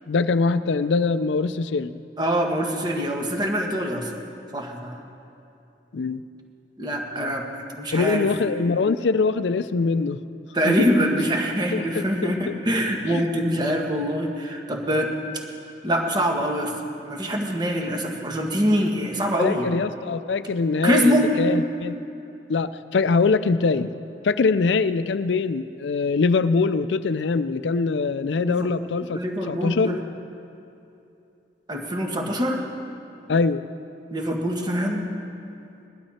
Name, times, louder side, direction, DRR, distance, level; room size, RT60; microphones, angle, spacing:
voice 1, 0.1-2.0 5.9-6.2 7.9-10.2 10.6-10.8 11.7-12.6 13.1-13.2 19.4-22.0 22.5-23.9 24.2-29.2 29.5-30.0 33.3-33.6, left 4 dB, 85° left, 13 dB, 0.5 m, -23 dB
voice 2, 2.2-4.1 4.5-5.0 6.8-7.4 7.7-8.3 10.5-15.1 15.8-16.7 17.0-19.7 20.8-21.3 28.4-28.7 29.1-30.0 31.7-32.7 34.1-35.1, equal, 25° right, 1 dB, 1.6 m, -24 dB
19.0 x 12.0 x 4.3 m, 2.8 s
head